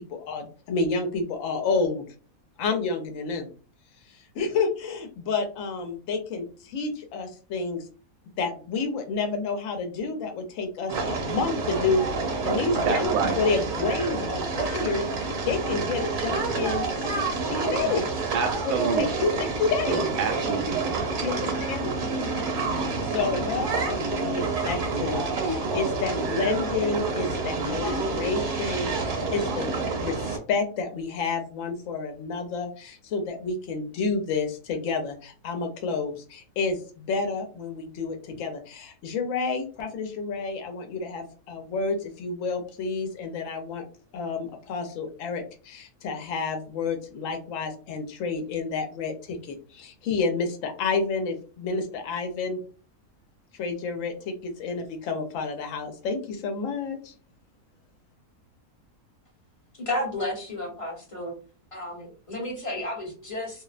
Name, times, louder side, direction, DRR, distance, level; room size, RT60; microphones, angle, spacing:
voice 1, 0.0-2.1 2.6-3.5 4.3-7.8 8.4-12.0 12.4-17.2 17.5-18.3 18.6-20.1 21.2-21.9 23.0-43.8 44.1-52.6 53.6-57.1, left 4 dB, 65° left, 0.9 m, -30 dB
sound 1, 10.9-30.4, right 3 dB, 65° right, 1.2 m, -28 dB
voice 2, 12.9-13.4 18.3-19.2 19.9-21.1, right 6 dB, 85° right, 1.1 m, -28 dB
voice 3, 59.8-61.3 61.7-63.6, left 1 dB, 25° left, 0.8 m, -32 dB
2.7 x 2.0 x 2.4 m
omnidirectional pair, 1.6 m